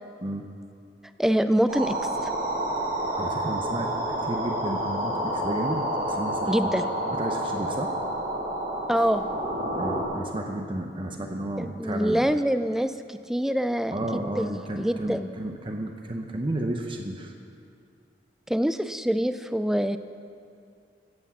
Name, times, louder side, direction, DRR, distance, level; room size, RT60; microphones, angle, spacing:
voice 1, 1.2-2.0 6.5-6.8 8.9-9.2 11.6-15.3 18.5-20.0, equal, ahead, 10 dB, 0.4 m, -25 dB
sound 1, 1.7-10.0, right 1 dB, 50° right, 2.6 m, -29 dB
voice 2, 3.2-3.9 4.2-6.8 7.2-7.9 9.8-12.3 13.9-17.3, right 1 dB, 30° right, 3 dB, 0.8 m, -32 dB
15.5 x 8.3 x 7.3 m, 2.5 s
head